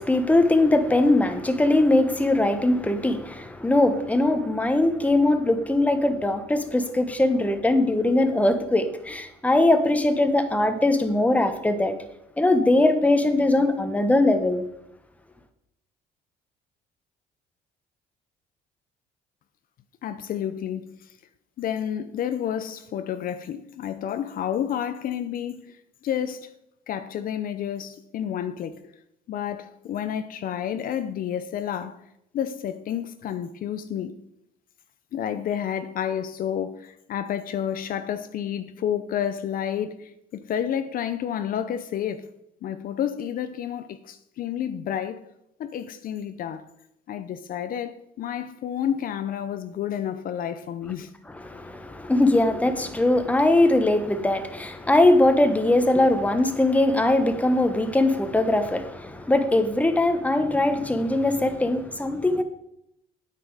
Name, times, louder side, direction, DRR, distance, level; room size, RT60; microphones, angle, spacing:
voice 1, 0.0-11.9 12.4-14.6 51.4-62.4, left 2 dB, 10° left, 1.1 m, -21 dB
voice 2, 20.0-21.1 21.6-25.8 26.0-26.5 26.9-28.9 29.3-32.0 32.3-34.2 35.1-42.3 42.6-45.3 45.6-46.7 47.1-51.1, left 9 dB, 55° left, 0.6 m, -30 dB
9.3 x 8.7 x 4.8 m
cardioid pair, 110°, 17 cm